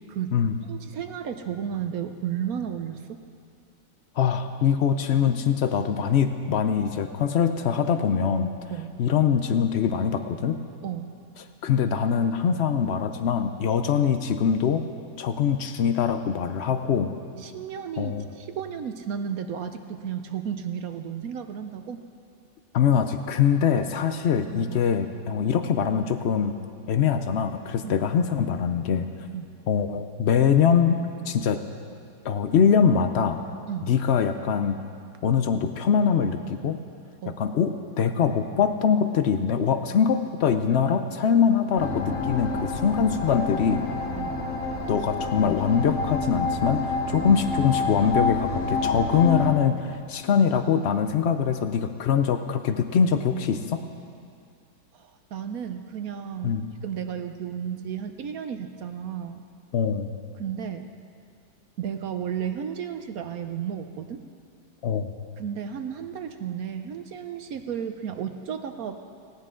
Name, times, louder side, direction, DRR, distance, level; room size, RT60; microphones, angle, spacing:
voice 1, 0.0-0.4 0.7-3.2 8.7-8.9 10.8-11.1 17.4-22.0 24.7-24.8 27.8-27.9 29.3-29.5 33.7-33.9 37.2-37.4 44.1-44.4 54.9-56.6 56.8-59.4 60.4-60.9 61.8-64.2 65.4-69.0, right 8 dB, 65° right, 8 dB, 1.0 m, -33 dB
voice 2, 4.2-8.5 9.0-10.6 11.6-14.8 15.2-17.1 18.0-18.3 22.7-26.5 26.9-29.1 29.7-31.0 31.3-31.6 32.2-33.4 33.9-34.8 35.2-36.8 37.3-43.8 44.9-53.8 56.4-56.7 59.7-60.1 64.8-65.1, left 7 dB, 85° left, 8 dB, 0.5 m, -23 dB
sound 1, 41.8-49.5, left 3 dB, 45° left, 1.4 m, -28 dB
18.5 x 17.0 x 3.8 m, 2.3 s
omnidirectional pair, 1.9 m